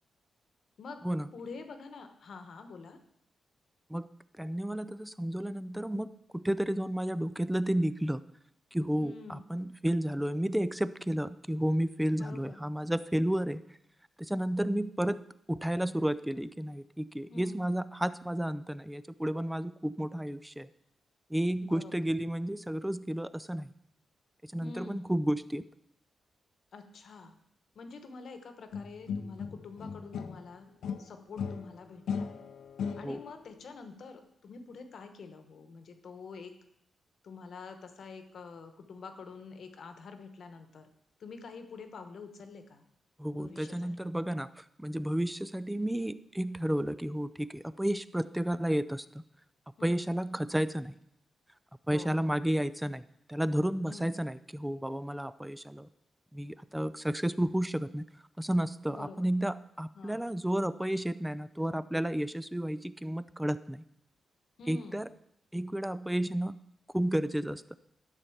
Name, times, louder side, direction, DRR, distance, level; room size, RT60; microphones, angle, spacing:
voice 1, 1.3-3.0 9.0-9.4 12.1-12.6 17.3-17.7 21.6-22.0 24.6-25.0 26.7-27.3 27.7-30.7 31.0-32.3 32.9-36.5 37.2-40.9 41.2-42.8 43.3-43.9 49.8-50.1 51.9-52.3 53.9-54.1 58.9-59.3 59.9-60.3 64.6-65.1, left 4 dB, 60° left, 8 dB, 1.1 m, -47 dB
voice 2, 4.4-8.2 8.7-13.6 14.2-15.2 15.5-20.7 21.3-23.7 24.4-25.6 33.0-33.2 43.2-49.1 49.8-51.0 51.9-53.0 53.3-55.9 56.3-58.0 58.4-63.8 64.7-65.1 65.5-66.5 66.9-67.8, right 1 dB, 5° right, 15 dB, 0.3 m, -32 dB
sound 1, 28.7-30.5 30.8-33.4, left 6 dB, 85° left, 0.7 m, -37 dB
12.0 x 4.1 x 7.1 m, 0.74 s
wide cardioid pair, 160°, 0 cm